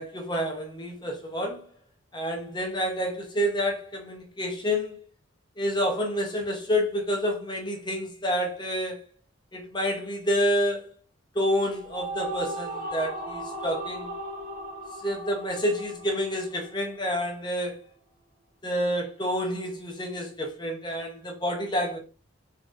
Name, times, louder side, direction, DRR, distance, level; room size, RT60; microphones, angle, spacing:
voice 1, 0.0-1.6 2.1-5.0 5.6-9.0 9.5-10.9 11.3-14.1 15.0-17.8 18.6-22.0, equal, 20° left, 0.8 m, -28 dB
sound 1, 11.5-17.0, right 1 dB, 40° right, 0.8 m, -37 dB
3.9 x 3.8 x 2.5 m
head